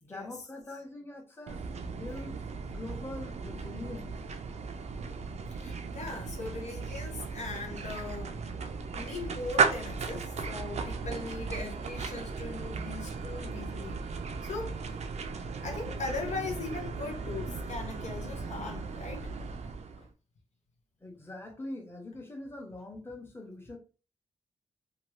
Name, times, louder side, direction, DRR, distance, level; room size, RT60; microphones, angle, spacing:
voice 1, 0.0-2.4 2.7-4.1 21.0-23.8, left 2 dB, 20° left, 0.9 m, -43 dB
sound 1, 1.5-20.1, right 4 dB, 65° right, 0.4 m, -36 dB
voice 2, 5.5-8.4 8.9-15.0 15.6-19.3 20.0-20.1, left 3 dB, 65° left, 0.7 m, -40 dB
2.8 x 2.3 x 3.1 m
cardioid pair, 75°, 12 cm